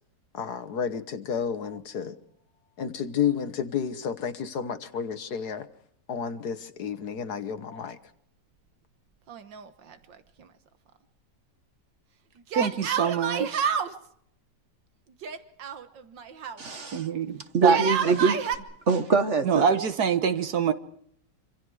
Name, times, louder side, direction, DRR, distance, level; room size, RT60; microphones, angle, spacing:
voice 1, 0.3-2.2 2.8-5.7 6.1-8.0, left 7 dB, 65° left, 1.6 m, -31 dB
Yell, 9.3-10.1 10.4-10.5 12.5-13.9 15.2-16.6 17.6-18.6, right 7 dB, 90° right, 2.0 m, -29 dB
voice 2, 12.5-13.7 16.9-17.8 19.4-20.7, right 6 dB, 65° right, 1.6 m, -25 dB
voice 3, 16.6-17.1 17.5-18.4 18.9-19.6, right 4 dB, 45° right, 1.4 m, -23 dB
26.5 x 26.0 x 4.8 m
omnidirectional pair, 1.9 m